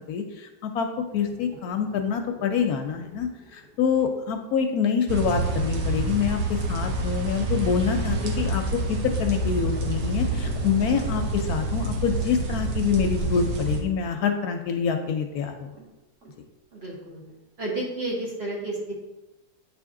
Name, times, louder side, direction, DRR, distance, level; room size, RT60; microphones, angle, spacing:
voice 1, 0.1-15.7, left 6 dB, 75° left, 5 dB, 1.0 m, -26 dB
sound 1, 1.0-5.7 9.1-15.9 16.2-16.4 16.7-16.8 17.3-17.4, right 2 dB, 70° right, 1.9 m, -46 dB
sound 2, 5.1-13.8, right 2 dB, 85° right, 1.4 m, -27 dB
voice 2, 16.7-17.2 17.6-18.9, right 2 dB, 40° right, -3 dB, 1.4 m, -31 dB
8.6 x 3.5 x 3.6 m, 1.0 s
omnidirectional pair, 1.7 m